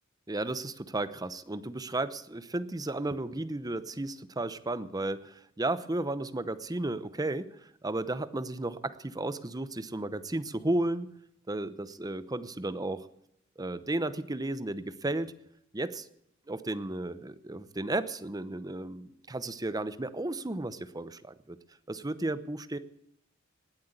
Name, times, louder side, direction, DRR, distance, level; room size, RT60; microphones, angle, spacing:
voice 1, 0.3-11.1 11.5-13.1 13.6-15.3 15.7-16.1 16.5-21.6 21.9-22.8, right 2 dB, 20° right, 13 dB, 0.8 m, -34 dB
19.0 x 8.0 x 8.1 m, 0.78 s
head